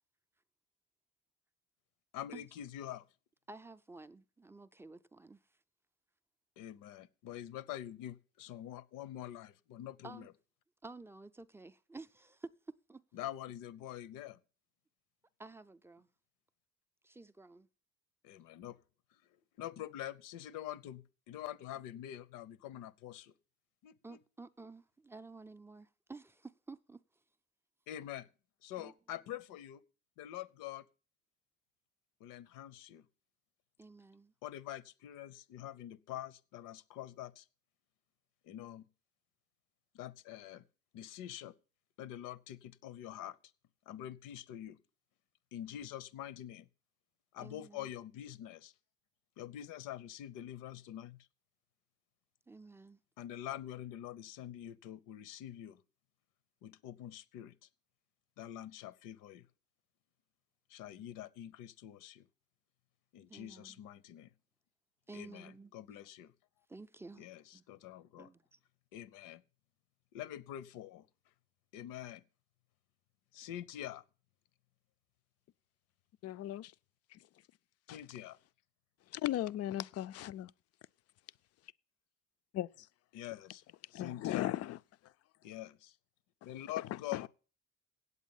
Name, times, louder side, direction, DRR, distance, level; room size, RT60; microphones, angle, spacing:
voice 1, 2.1-3.0 6.6-10.3 13.1-14.4 18.2-18.8 19.6-23.3 23.8-24.2 27.9-28.3 28.6-29.8 30.2-30.8 32.2-33.1 34.4-37.5 38.4-38.9 39.9-40.6 40.9-41.5 42.0-43.4 43.9-44.8 45.5-46.7 47.3-48.7 49.4-51.2 53.2-55.8 56.6-57.7 58.4-59.5 60.7-62.3 63.1-64.3 65.1-66.3 67.2-68.3 68.9-69.4 70.1-71.1 71.7-72.2 73.3-74.0 77.9-78.4 83.1-83.6 83.9-84.5 85.4-86.0 86.4-87.3, left 12 dB, 80° left, 0.8 m, -45 dB
voice 2, 3.5-5.4 10.0-10.3 10.8-12.5 12.9-13.0 15.4-16.1 17.0-17.7 24.0-27.0 28.8-28.9 33.8-34.3 47.4-47.9 52.5-53.0 63.3-63.8 65.1-65.7 66.7-67.3 67.5-67.6 68.2-68.6, right 3 dB, 10° right, 0.4 m, -52 dB
voice 3, 76.2-76.7 77.1-77.2 77.9-78.0 79.1-80.5 82.5-82.9 83.9-84.8 87.1-87.3, left 13 dB, 50° left, 0.4 m, -37 dB
8.3 x 8.3 x 7.1 m
cardioid pair, 125°, 32 cm